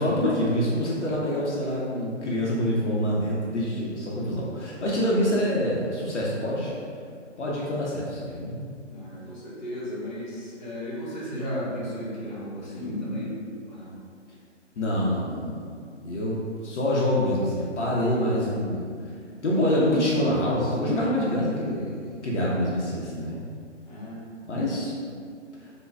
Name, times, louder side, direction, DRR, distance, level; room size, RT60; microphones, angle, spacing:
voice 1, 0.0-6.7 7.4-8.6 14.8-15.7 16.0-18.9 19.4-23.4 24.5-24.9 25.6-25.7, equal, 65° left, -5 dB, 0.8 m, -26 dB
voice 2, 8.9-13.4 13.7-14.0 23.9-24.2, equal, 35° left, -7 dB, 0.9 m, -34 dB
3.3 x 2.2 x 3.3 m, 2.2 s
figure-of-eight pair, 140°, 37 cm